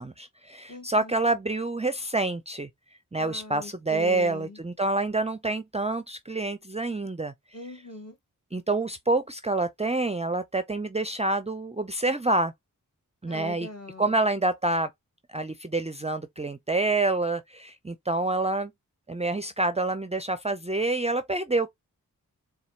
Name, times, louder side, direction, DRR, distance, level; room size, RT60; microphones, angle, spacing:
voice 1, 0.0-2.7 3.1-7.3 8.5-12.5 13.2-13.7 14.0-14.9 15.3-18.7 19.1-21.7, right 2 dB, 20° right, 0.5 m, -27 dB
voice 2, 0.7-1.2 3.2-4.6 7.5-8.2 13.3-14.2, left 2 dB, 45° left, 2.7 m, -41 dB
4.1 x 2.3 x 4.1 m
cardioid pair, 40°, 34 cm